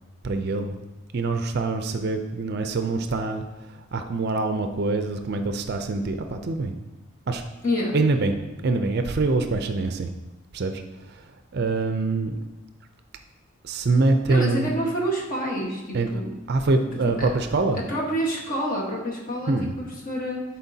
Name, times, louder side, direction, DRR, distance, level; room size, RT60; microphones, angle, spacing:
voice 1, 0.2-0.8 1.1-6.7 7.3-7.4 7.9-8.4 8.6-10.1 10.5-12.3 13.6-14.7 15.9-16.1 16.5-17.8 19.5-19.7, right 3 dB, 45° right, 7 dB, 0.4 m, -25 dB
voice 2, 7.6-7.9 14.3-16.3 17.2-17.3 17.9-20.4, equal, 40° left, -2 dB, 1.2 m, -28 dB
11.0 x 4.3 x 2.7 m, 1.1 s
head